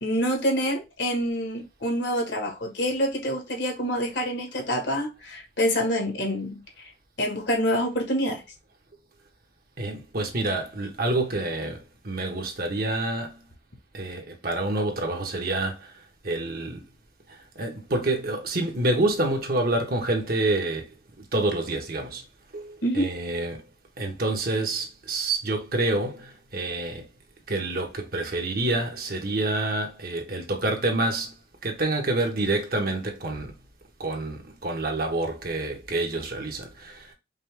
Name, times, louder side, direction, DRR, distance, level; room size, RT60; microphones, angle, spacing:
voice 1, 0.0-6.6 7.2-8.4 22.8-23.1, equal, 80° left, 1.6 m, -26 dB
voice 2, 9.8-13.4 13.9-16.8 17.3-22.2 22.5-23.6 24.0-27.0 27.5-31.4 31.6-33.5 34.0-37.1, right 2 dB, 55° right, 1.2 m, -28 dB
5.3 x 2.4 x 3.3 m
head